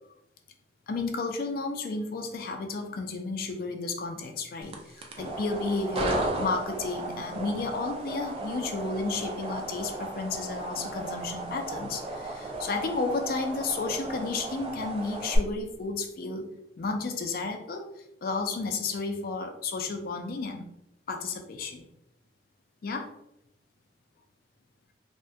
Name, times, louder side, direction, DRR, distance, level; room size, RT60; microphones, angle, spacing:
voice 1, 0.9-16.5 16.8-17.8 18.2-20.7 21.1-21.8 22.8-23.1, left 3 dB, 55° left, 4 dB, 0.4 m, -32 dB
sound 1, 4.6-15.4, right 2 dB, 30° right, 0.3 m, -35 dB
2.3 x 2.1 x 2.6 m, 0.80 s
head